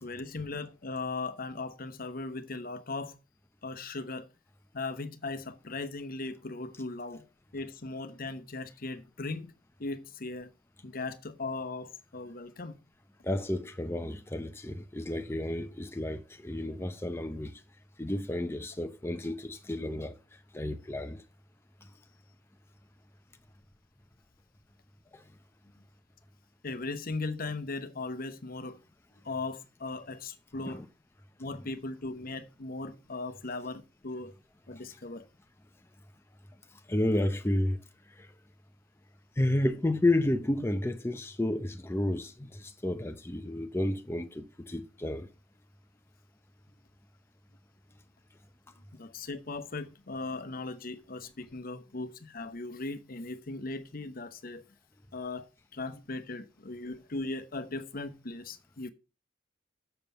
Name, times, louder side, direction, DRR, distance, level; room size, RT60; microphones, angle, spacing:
voice 1, 0.0-3.2 3.6-4.3 4.7-7.3 7.5-9.5 9.8-10.5 10.8-12.8 26.6-28.8 29.2-30.8 31.4-34.3 34.7-35.3 48.9-54.6 55.1-58.9, left 3 dB, 50° left, 0.9 m, -38 dB
voice 2, 13.2-17.6 18.0-20.1 20.5-21.2 25.1-25.2 30.6-30.9 36.9-37.8 38.2-38.3 39.4-45.3, left 1 dB, 15° left, 0.6 m, -31 dB
7.4 x 6.8 x 6.9 m
head